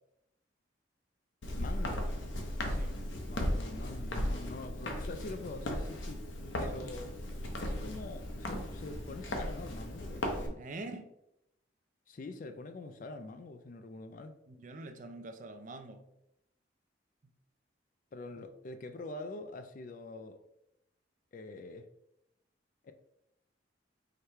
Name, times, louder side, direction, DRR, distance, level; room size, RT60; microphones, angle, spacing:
Walk footsteps, 1.4-10.5, left 1 dB, 80° left, 0.8 m, -36 dB
voice 1, 1.6-2.1 3.3-6.2 6.6-7.1 7.6-10.6 12.1-14.4 18.1-20.4 21.3-21.9 22.8-22.9, left 2 dB, 45° left, 0.3 m, -45 dB
voice 2, 2.6-3.0 6.6-7.1 10.5-11.1 14.5-16.0 18.4-18.5, right 2 dB, 40° right, 0.4 m, -46 dB
4.9 x 2.2 x 4.4 m
head